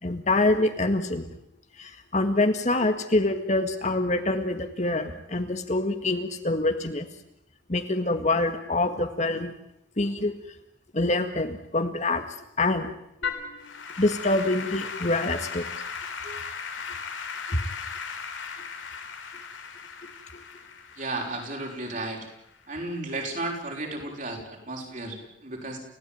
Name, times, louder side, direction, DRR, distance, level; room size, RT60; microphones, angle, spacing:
voice 1, 0.0-1.3 1.8-7.1 7.7-9.6 10.0-10.3 10.9-12.9 13.2-13.3 14.0-15.8 17.5-17.6 20.3-20.4, left 2 dB, 40° left, 7 dB, 1.9 m, -25 dB
Applause / Keyboard (musical), 13.2-22.6, left 5 dB, 85° left, 4.2 m, -37 dB
voice 2, 21.0-22.3 22.7-25.8, right 2 dB, 40° right, 1 dB, 6.0 m, -34 dB
30.0 x 16.5 x 9.4 m, 0.79 s
head